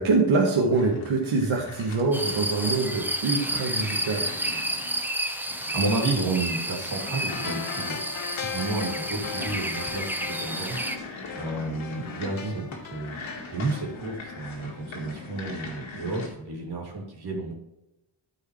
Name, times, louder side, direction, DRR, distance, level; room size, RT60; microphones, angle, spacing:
voice 1, 0.0-4.3 12.4-12.5, right 3 dB, 85° right, -2 dB, 1.6 m, -24 dB
sound 1, 0.8-16.3, left 3 dB, 75° left, 2.0 m, -42 dB
sound 2, 2.1-11.0, right 1 dB, 5° right, 0.6 m, -31 dB
voice 2, 5.5-8.0 8.4-13.2 13.5-17.5, right 3 dB, 55° right, -1 dB, 2.6 m, -31 dB
sound 3, 7.3-14.9 15.2-15.3, left 7 dB, 45° left, 0.7 m, -39 dB
13.5 x 4.8 x 3.3 m, 0.93 s
wide cardioid pair, 150°, 46 cm